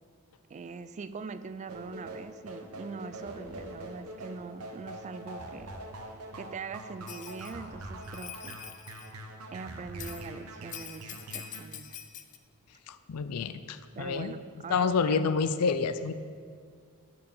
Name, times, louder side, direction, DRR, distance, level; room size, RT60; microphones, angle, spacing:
voice 1, 0.5-5.7 6.4-8.6 9.5-12.0 14.0-15.2, right 5 dB, 30° right, 13 dB, 0.3 m, -42 dB
sound 1, 1.7-11.6, right 1 dB, 75° right, 0.9 m, -44 dB
Bell, 7.1-7.5 8.0-9.1 10.0-10.3 10.7-12.4, left 10 dB, 35° left, 0.5 m, -44 dB
voice 2, 12.9-14.3 14.7-16.1, left 5 dB, 90° left, 12 dB, 0.5 m, -28 dB
12.5 x 4.7 x 5.5 m, 2.1 s
head